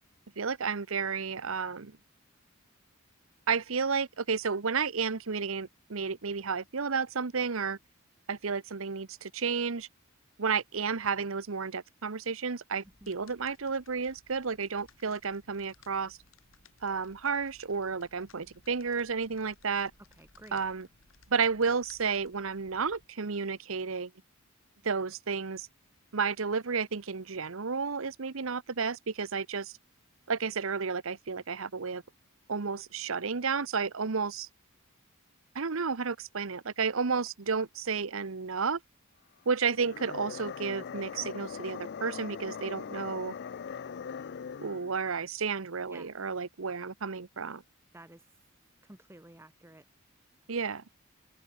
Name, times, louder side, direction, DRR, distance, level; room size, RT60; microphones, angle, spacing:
voice 1, 0.4-2.0 3.5-7.8 8.3-9.9 10.4-16.2 16.8-19.9 20.5-20.9 21.3-24.1 24.8-25.7 26.1-29.8 30.3-32.0 32.5-34.5 35.5-38.8 39.5-43.3 44.6-47.6 50.5-50.8, right 5 dB, 70° right, 0.9 m, -32 dB
sound 1, 12.8-23.1, left 4 dB, 70° left, 4.6 m, -61 dB
voice 2, 20.2-20.6 45.9-46.1 47.9-48.2 48.8-49.8, right 1 dB, 10° right, 1.1 m, -52 dB
sound 2, 39.7-45.0, left 6 dB, 55° left, 0.4 m, -41 dB
head